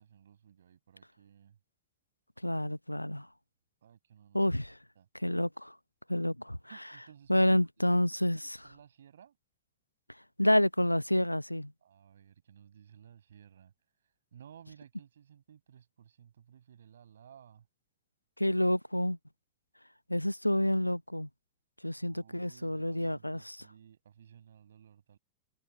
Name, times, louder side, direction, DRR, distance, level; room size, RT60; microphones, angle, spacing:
voice 1, 0.0-1.6 3.8-4.5 5.0-5.1 6.7-7.6 7.9-8.0 8.3-9.4 11.8-13.7 14.3-17.7 22.0-25.2, right 9 dB, 65° right, 7.3 m, -57 dB
voice 2, 2.4-3.3 4.3-4.8 5.2-5.7 6.1-6.6 7.3-8.4 10.4-11.7 18.4-19.2 20.1-21.3 21.8-23.6, left 1 dB, 90° left, 0.9 m, -28 dB
figure-of-eight pair, 90°, 0 cm